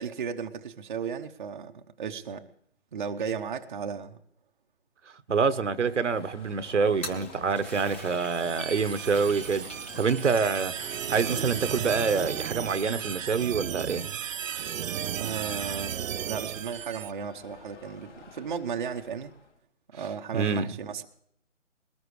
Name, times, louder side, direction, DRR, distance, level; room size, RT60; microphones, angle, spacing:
voice 1, 0.0-2.5 2.9-4.2 15.0-19.3 19.9-21.1, right 6 dB, 40° right, 0.9 m, -35 dB
voice 2, 5.3-9.7 10.0-10.7 11.1-14.2 20.3-20.7, right 5 dB, 65° right, 1.2 m, -26 dB
Alarm, 5.6-19.6, left 2 dB, 65° left, 2.8 m, -50 dB
Toilet flush, 6.8-13.2, equal, 10° left, 0.6 m, -44 dB
sound 1, 8.2-17.1, right 9 dB, 80° right, 0.5 m, -35 dB
21.5 x 19.0 x 3.2 m
figure-of-eight pair, 155°, 38 cm